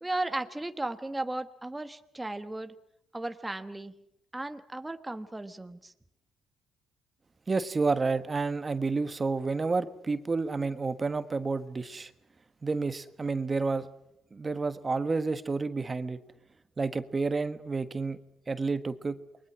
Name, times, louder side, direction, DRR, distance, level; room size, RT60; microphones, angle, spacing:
voice 1, 0.0-2.7 3.1-3.9 4.3-5.9, right 2 dB, 10° right, 8 dB, 1.3 m, -35 dB
voice 2, 7.5-12.1 12.6-13.9 14.3-16.2 16.8-18.2 18.5-19.2, right 4 dB, 30° right, 11 dB, 1.4 m, -30 dB
29.0 x 22.0 x 6.1 m, 0.76 s
cardioid pair, 90°, 0 cm